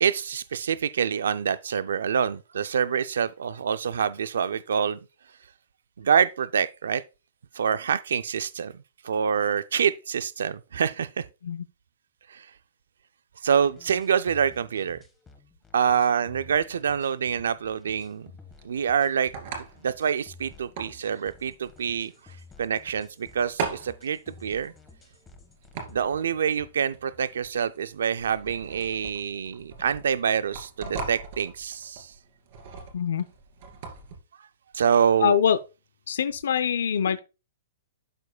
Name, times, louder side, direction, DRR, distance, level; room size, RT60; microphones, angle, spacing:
voice 1, 0.0-5.0 6.0-7.0 7.5-8.7 9.0-11.2 12.3-12.5 13.4-15.0 15.7-18.3 18.6-19.3 19.8-24.7 25.9-32.1 34.7-35.4, right 7 dB, 80° right, 0.3 m, -26 dB
sound 1, 13.6-26.0, left 4 dB, 15° left, 1.2 m, -53 dB
sound 2, 16.5-34.2, right 5 dB, 60° right, 2.4 m, -41 dB
voice 2, 32.9-33.2 35.2-35.6 36.1-37.2, left 8 dB, 80° left, 0.5 m, -24 dB
12.0 x 4.8 x 2.2 m
hypercardioid pair, 135°, 0 cm